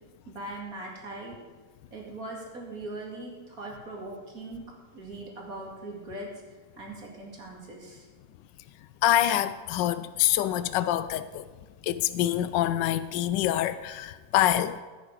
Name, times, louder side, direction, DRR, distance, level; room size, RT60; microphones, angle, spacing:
voice 1, 0.3-1.4 1.9-4.6 4.9-8.1, right 2 dB, 55° right, 2.7 m, -40 dB
voice 2, 9.0-11.5 11.8-14.8, left 12 dB, 85° left, 1.3 m, -26 dB
15.0 x 9.0 x 4.8 m
omnidirectional pair, 1.9 m